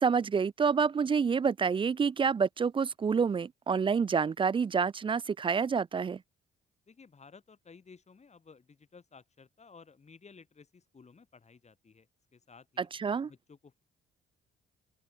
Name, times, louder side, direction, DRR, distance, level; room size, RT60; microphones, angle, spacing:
voice 1, 0.0-6.2 12.8-13.3, right 6 dB, 25° right, 0.4 m, -28 dB
voice 2, 6.9-12.1 12.3-12.9 13.2-13.8, left 5 dB, 35° left, 7.9 m, -56 dB
open air
cardioid pair, 90°, 20 cm